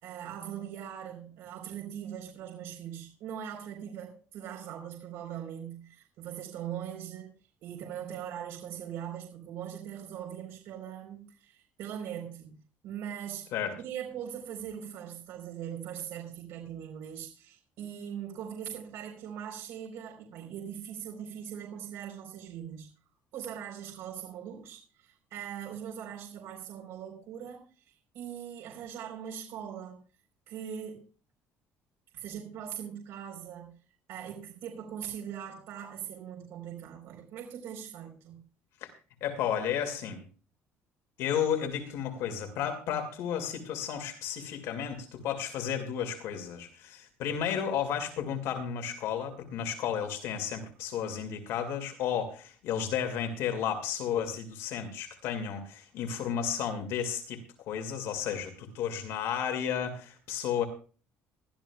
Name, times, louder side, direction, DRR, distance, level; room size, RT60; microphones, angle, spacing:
voice 1, 0.0-7.3 7.6-12.5 12.8-22.9 23.3-30.0 30.5-31.0 32.1-33.7 34.1-38.4, right 9 dB, 65° right, 0 dB, 4.0 m, -41 dB
voice 2, 39.2-40.2 41.2-60.7, left 8 dB, 65° left, 6 dB, 2.3 m, -33 dB
21.5 x 13.0 x 2.3 m, 0.37 s
cardioid pair, 180°, 5 cm